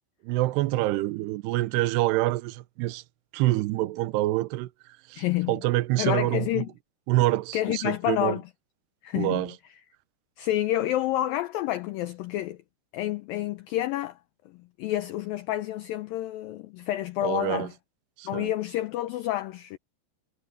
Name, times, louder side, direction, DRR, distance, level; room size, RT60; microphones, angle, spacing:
voice 1, 0.2-3.0 3.3-4.7 5.1-6.6 7.1-8.4 9.2-9.5 17.2-17.7 18.2-18.5, right 17 dB, 80° right, 2.8 m, -26 dB
voice 2, 5.2-5.6 6.0-6.7 7.5-8.4 9.0-9.5 10.4-12.6 12.9-14.2 14.8-17.7 18.3-19.8, left 14 dB, 90° left, 2.0 m, -29 dB
omnidirectional pair, 5.0 m